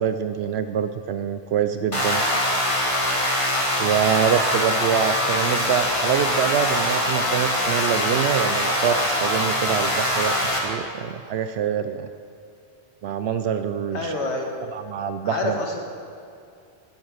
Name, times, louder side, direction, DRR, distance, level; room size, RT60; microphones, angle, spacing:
voice 1, 0.0-2.2 3.8-12.1 13.0-14.1 14.7-15.6, right 8 dB, 75° right, 10 dB, 0.8 m, -25 dB
sound 1, 1.9-10.6, left 1 dB, 30° left, 2.1 m, -23 dB
voice 2, 13.9-14.5 15.2-15.8, left 2 dB, 85° left, 2 dB, 2.0 m, -27 dB
14.5 x 9.2 x 6.4 m, 2.5 s
omnidirectional pair, 1.1 m